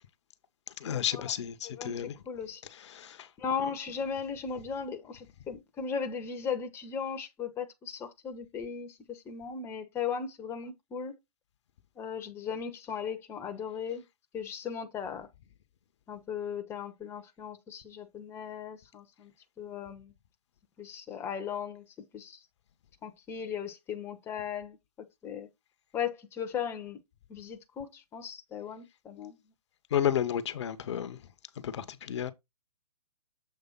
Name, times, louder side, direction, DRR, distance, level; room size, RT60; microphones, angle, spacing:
voice 1, 0.8-2.2 2.8-3.3 29.9-31.2 31.6-32.3, left 9 dB, 45° left, 0.7 m, -31 dB
voice 2, 1.6-2.6 3.4-11.1 12.0-14.0 14.3-15.3 16.1-19.3 19.6-20.1 20.8-21.8 22.1-22.4 23.0-24.8 25.2-25.5 25.9-27.0 27.3-29.4, left 7 dB, 10° left, 0.7 m, -37 dB
7.1 x 3.3 x 5.4 m
figure-of-eight pair, 130°, 20 cm